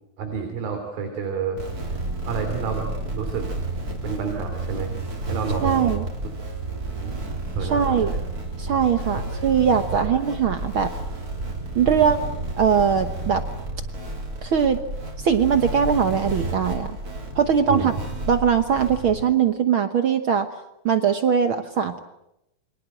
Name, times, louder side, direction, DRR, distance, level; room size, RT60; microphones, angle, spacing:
voice 1, 0.2-1.6 2.3-3.5 4.0-4.9 5.3-5.9 7.0-7.2 7.5-8.2 9.9-10.1 11.8-12.1 17.7-18.0, right 5 dB, 90° right, 4 dB, 4.9 m, -29 dB
sound 1, 1.6-19.2, right 2 dB, 25° right, 3.5 m, -31 dB
voice 2, 5.6-6.0 7.6-8.1 8.6-10.9 11.7-12.3 12.6-13.4 14.4-14.8 15.2-17.0 17.3-17.9 18.3-20.5 20.8-22.0, right 7 dB, 75° right, 9 dB, 1.2 m, -21 dB
29.0 x 24.0 x 7.8 m, 0.85 s
omnidirectional pair, 4.0 m